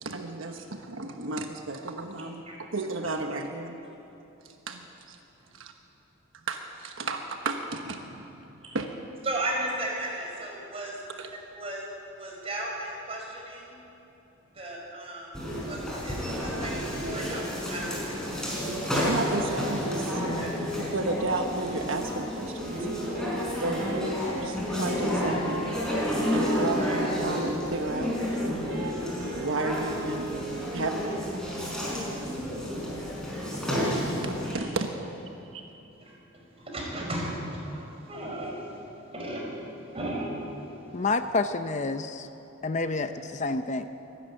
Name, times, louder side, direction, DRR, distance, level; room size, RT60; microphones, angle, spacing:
voice 1, 0.0-3.8 4.4-5.2 5.5-5.7 6.5-8.4 8.7-8.9 11.2-11.3 19.0-22.9 23.6-25.7 26.3-28.2 29.4-30.3 30.7-31.4 33.5-33.6 34.2-34.9 35.5-35.6, right 2 dB, 75° right, 4 dB, 1.2 m, -33 dB
voice 2, 9.3-10.9 11.5-11.8 12.2-13.6 14.6-15.4 15.7-15.8 16.0-16.2 16.4-16.9 17.1-18.1 20.2-20.5 26.8-27.0 36.7-37.3 38.1-38.5 39.1-39.4 39.9-40.4, right 1 dB, 30° right, -2 dB, 5.3 m, -34 dB
sound 1, 15.3-34.5, left 1 dB, 5° left, 4.8 m, -31 dB
Wind instrument woodwind instrument, 22.6-31.0, right 3 dB, 60° right, 2.5 m, -39 dB
sound 2, 26.1-30.9, right 1 dB, 80° left, 2.1 m, -37 dB
voice 3, 40.9-42.3 42.6-43.9, left 3 dB, 35° left, 9 dB, 0.6 m, -28 dB
24.0 x 12.5 x 9.1 m, 3.0 s
head